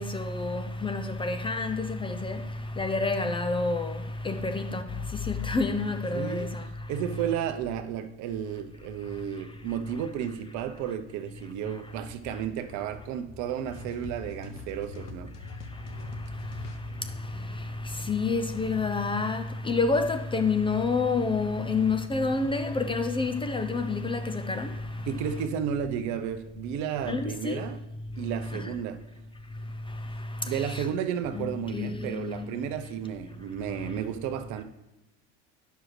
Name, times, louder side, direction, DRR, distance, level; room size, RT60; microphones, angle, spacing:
voice 1, 0.0-2.4 2.7-6.7 16.4-16.6 17.2-24.8 27.1-27.6 28.5-28.7 30.4-30.9 31.3-32.6, left 3 dB, 15° left, 0.5 m, -29 dB
voice 2, 6.1-6.5 6.9-15.3 25.1-27.8 28.2-29.0 30.4-34.6, right 9 dB, 55° right, 0.7 m, -33 dB
sound 1, 13.7-18.7, left 3 dB, 80° left, 0.9 m, -44 dB
9.1 x 6.3 x 3.2 m
hypercardioid pair, 85°, 35 cm